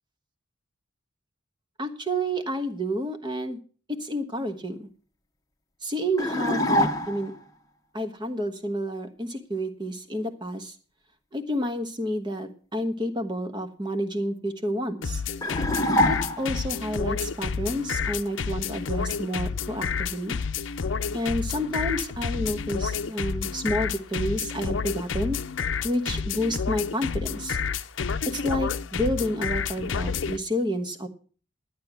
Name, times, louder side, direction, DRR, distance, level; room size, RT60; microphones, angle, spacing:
voice 1, 1.8-3.6 4.0-4.9 5.8-7.3 7.9-10.7 11.3-15.2 16.1-20.3 21.1-25.4 25.8-27.6 28.3-31.1, equal, 20° right, 7 dB, 1.3 m, -30 dB
sound 1, 6.2-7.4 15.4-16.7, left 1 dB, 15° left, 1.2 m, -25 dB
sound 2, 15.0-30.4, left 6 dB, 70° left, 0.6 m, -29 dB
11.5 x 9.5 x 6.1 m, 0.40 s
head